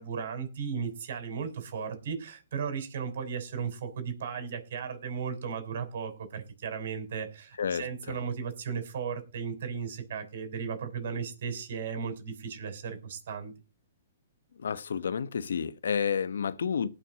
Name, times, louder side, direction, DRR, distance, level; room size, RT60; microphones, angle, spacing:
voice 1, 0.0-13.5, right 6 dB, 60° right, 6.5 m, -35 dB
voice 2, 7.6-8.2 14.6-16.9, left 7 dB, 80° left, 1.2 m, -30 dB
18.5 x 6.6 x 6.3 m
hypercardioid pair, 135°, 0 cm